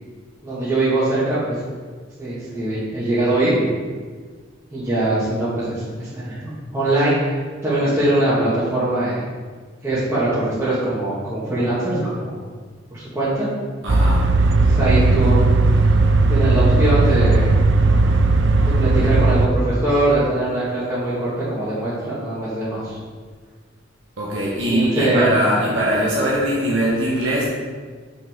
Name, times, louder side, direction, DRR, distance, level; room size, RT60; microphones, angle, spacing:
voice 1, 0.4-1.5 2.2-3.7 4.7-5.8 6.1-9.2 9.8-12.4 12.9-13.5 14.5-15.5 16.3-17.5 18.6-23.0 24.7-25.3, right 1 dB, 15° right, -14 dB, 1.9 m, -22 dB
voice 2, 13.8-14.3 24.2-27.5, equal, 80° right, -5 dB, 1.3 m, -21 dB
sound 1, 13.9-19.5, right 3 dB, 65° right, 0.5 m, -16 dB
6.5 x 5.8 x 3.8 m, 1.5 s
head